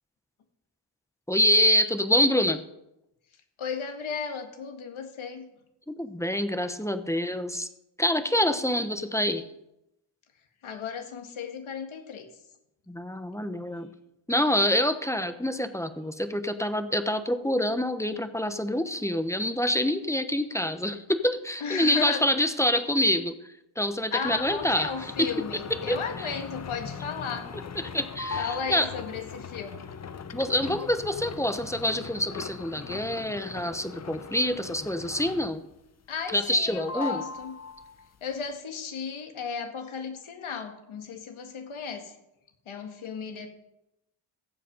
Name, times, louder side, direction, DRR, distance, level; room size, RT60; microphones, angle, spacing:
voice 1, 1.3-2.6 5.9-7.7 8.0-9.5 12.9-13.9 14.3-23.3 23.8-24.9 25.2-25.3 25.9-26.0 27.9-28.9 30.3-35.6 36.3-37.2, left 1 dB, 5° left, 10 dB, 1.0 m, -26 dB
voice 2, 3.3-5.5 10.6-12.4 21.6-22.3 24.1-27.5 28.4-29.9 36.1-37.6 38.2-42.2 42.7-43.5, left 6 dB, 80° left, 5 dB, 1.9 m, -35 dB
sound 1, 24.2-35.7 36.1-36.6 36.9-38.2, left 5 dB, 35° left, 0.7 m, -39 dB
15.0 x 7.7 x 5.4 m, 0.86 s
cardioid pair, 80°, 48 cm